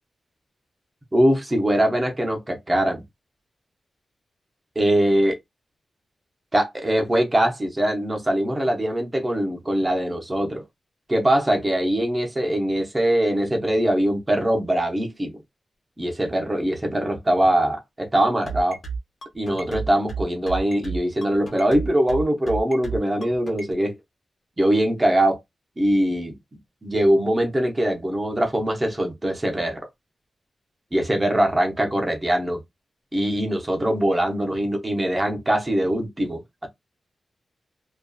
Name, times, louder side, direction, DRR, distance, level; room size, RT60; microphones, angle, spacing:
voice 1, 1.1-3.0 4.8-5.4 6.5-10.6 11.1-15.4 16.0-18.8 19.3-24.0 24.6-25.4 25.8-29.8 30.9-32.6 33.1-36.7, right 1 dB, 15° right, 0.6 m, -22 dB
sound 1, 18.5-23.7, right 5 dB, 50° left, 0.9 m, -31 dB
2.5 x 2.3 x 2.2 m
wide cardioid pair, 175°, 0 cm